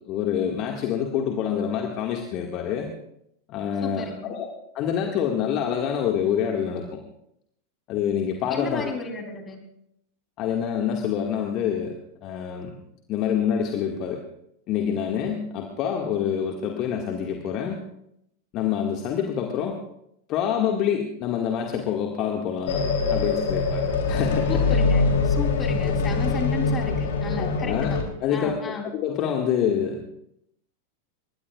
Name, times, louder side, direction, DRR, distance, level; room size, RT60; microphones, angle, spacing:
voice 1, 0.1-2.9 3.5-4.5 4.7-7.0 7.9-8.9 10.4-11.9 12.2-12.8 13.1-14.2 14.7-17.8 18.5-19.8 20.3-22.8 23.1-24.8 25.8-25.9 27.4-30.1, left 8 dB, 35° left, 1 dB, 2.0 m, -26 dB
voice 2, 3.8-4.4 8.5-9.6 24.5-28.0 28.3-28.9, left 4 dB, 20° left, 3 dB, 3.7 m, -33 dB
sound 1, 22.7-28.0, left 4 dB, 55° left, 3.3 m, -23 dB
21.5 x 21.0 x 2.5 m, 0.75 s
figure-of-eight pair, 90°, 0 cm